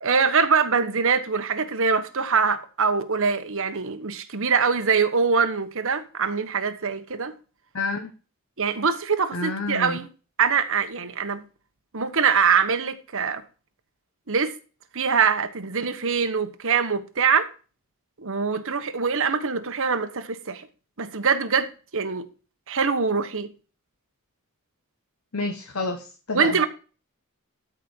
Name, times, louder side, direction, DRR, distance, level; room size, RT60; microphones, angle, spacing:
voice 1, 0.0-7.3 8.6-10.1 10.4-11.4 11.9-13.4 14.3-14.5 14.9-17.5 18.2-20.6 21.0-22.3 22.7-23.5 26.3-26.6, right 5 dB, 65° right, 1.3 m, -23 dB
voice 2, 7.7-8.1 9.3-10.0 25.3-26.6, left 2 dB, 70° left, 1.3 m, -29 dB
12.5 x 5.1 x 4.6 m
head